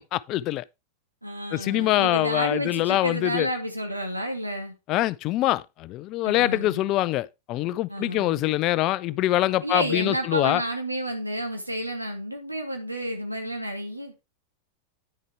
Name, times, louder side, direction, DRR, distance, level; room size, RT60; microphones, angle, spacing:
voice 1, 0.1-0.6 1.5-3.5 4.9-10.6, left 16 dB, 40° left, 0.4 m, -24 dB
voice 2, 1.2-4.7 6.2-6.8 7.9-8.4 9.6-14.1, right 1 dB, 85° right, 2.2 m, -30 dB
10.0 x 6.4 x 3.4 m
figure-of-eight pair, 90°, 0 cm